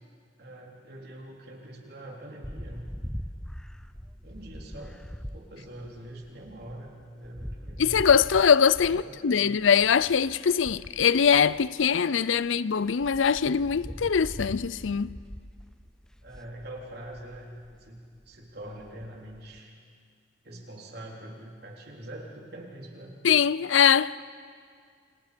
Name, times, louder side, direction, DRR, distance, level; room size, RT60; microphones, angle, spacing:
voice 1, 0.4-2.9 4.2-5.0 5.3-8.0 8.9-9.5 10.7-10.9 12.4-12.6 16.2-18.0 18.3-19.7 20.4-23.1, right 1 dB, 55° right, 3.7 m, -44 dB
sound 1, 2.4-12.5 12.8-19.6, equal, 5° left, 0.6 m, -42 dB
voice 2, 7.8-15.2 23.2-24.2, left 7 dB, 85° left, 0.5 m, -22 dB
29.5 x 26.5 x 5.2 m
head